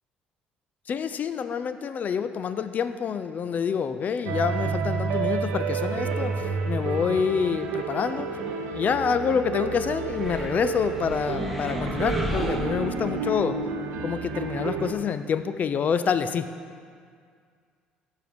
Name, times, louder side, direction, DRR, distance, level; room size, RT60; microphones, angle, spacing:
voice 1, 0.9-8.3 8.7-13.6 14.0-16.5, left 6 dB, 50° left, 11 dB, 0.4 m, -27 dB
sound 1, 4.3-14.9, right 5 dB, 75° right, 0.6 m, -30 dB
sound 2, 10.1-13.4, left 1 dB, ahead, 1.1 m, -33 dB
7.5 x 6.3 x 5.3 m, 2.1 s
supercardioid pair, 65°, 4 cm